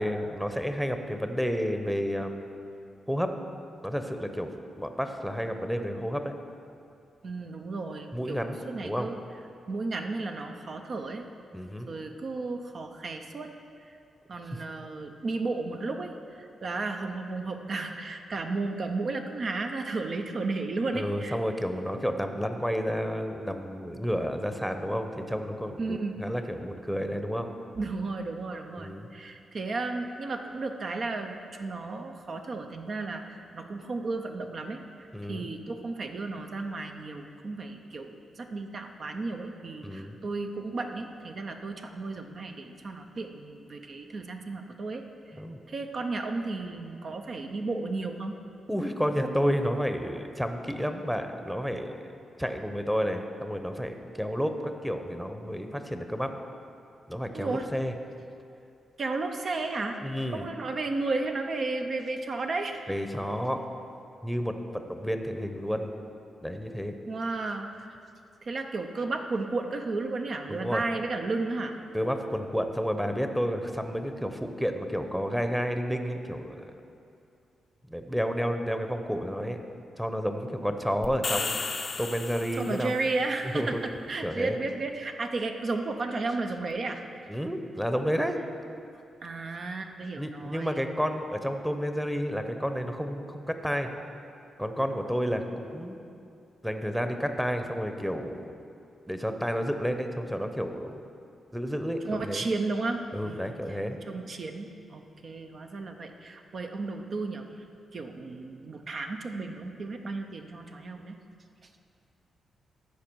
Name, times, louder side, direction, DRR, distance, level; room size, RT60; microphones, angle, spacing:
voice 1, 0.0-2.4 3.1-3.3 3.8-4.5 4.8-6.3 8.1-8.6 8.8-9.1 11.5-11.9 20.9-27.5 28.8-29.1 35.1-35.5 39.8-40.2 45.3-45.6 48.7-52.1 52.4-56.3 57.1-57.9 60.0-60.4 62.9-63.6 64.2-65.9 66.4-66.9 70.5-70.8 71.9-76.8 77.9-79.6 80.0-82.9 83.5-83.8 84.2-84.6 87.3-88.4 90.2-93.9 94.6-96.0 96.6-98.5 99.1-101.0 101.5-102.4 103.1-104.0, equal, 5° right, 6 dB, 0.8 m, -31 dB
voice 2, 7.2-9.2 9.7-11.3 11.9-13.5 13.8-14.0 14.3-21.4 25.8-26.2 27.8-45.4 45.7-48.4 57.3-57.7 59.0-60.0 60.3-62.9 67.1-68.0 68.4-71.7 82.5-87.0 89.2-90.8 102.0-103.8 104.1-107.6 107.9-111.2, right 3 dB, 55° right, 5 dB, 0.6 m, -33 dB
sound 1, 81.0-83.0, left 4 dB, 45° left, 0.5 m, -33 dB
14.0 x 4.9 x 4.6 m, 2.5 s
supercardioid pair, 55°, 0 cm